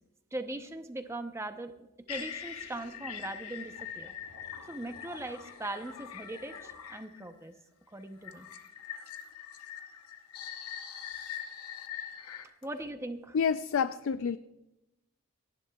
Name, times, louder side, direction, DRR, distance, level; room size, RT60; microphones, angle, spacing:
voice 1, 0.3-7.5 7.9-8.5 12.6-13.4, right 1 dB, 10° right, 8 dB, 0.7 m, -40 dB
sound 1, 2.1-7.3 8.2-12.5, left 8 dB, 85° left, 1.0 m, -43 dB
voice 2, 13.3-14.4, left 6 dB, 60° left, 12 dB, 0.3 m, -28 dB
28.5 x 10.5 x 2.3 m, 0.98 s
head